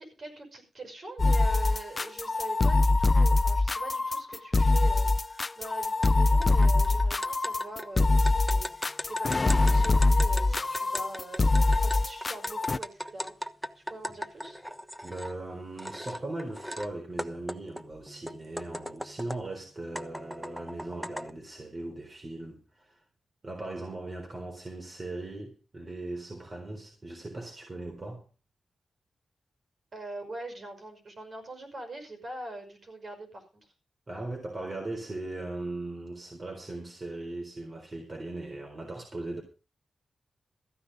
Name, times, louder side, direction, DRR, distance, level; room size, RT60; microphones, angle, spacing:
voice 1, 0.0-13.3 13.7-14.6 29.9-33.7, right 2 dB, 50° right, 5.7 m, -43 dB
sound 1, 1.2-12.8, left 2 dB, 35° left, 0.6 m, -24 dB
sound 2, 6.0-6.1 6.4-15.3 15.8-16.9 17.2-19.5 20.0-21.3, equal, ahead, 1.1 m, -39 dB
voice 2, 15.0-23.0 23.4-28.2 34.1-39.4, right 2 dB, 35° right, 3.8 m, -39 dB
14.5 x 9.9 x 5.3 m
cardioid pair, 85°, 0 cm